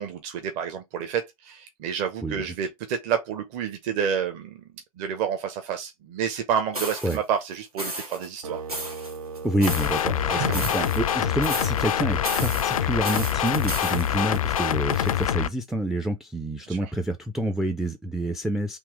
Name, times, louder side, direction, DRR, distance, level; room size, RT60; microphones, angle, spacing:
voice 1, 0.0-4.6 5.0-8.6 10.3-10.8 11.1-11.2 16.7-16.9, right 8 dB, 40° right, 0.9 m, -29 dB
voice 2, 2.2-2.5 7.0-7.2 9.4-18.8, right 1 dB, 5° right, 0.4 m, -28 dB
sound 1, 6.7-7.2 7.8-8.3 8.7-10.1 10.4-11.2 11.4-11.9 12.2-15.3, right 1 dB, 90° right, 1.9 m, -34 dB
sound 2, 8.4-14.5, right 4 dB, 70° right, 0.6 m, -39 dB
sound 3, 9.7-15.5, left 10 dB, 70° left, 0.4 m, -25 dB
3.6 x 2.9 x 4.6 m
figure-of-eight pair, 85°, 19 cm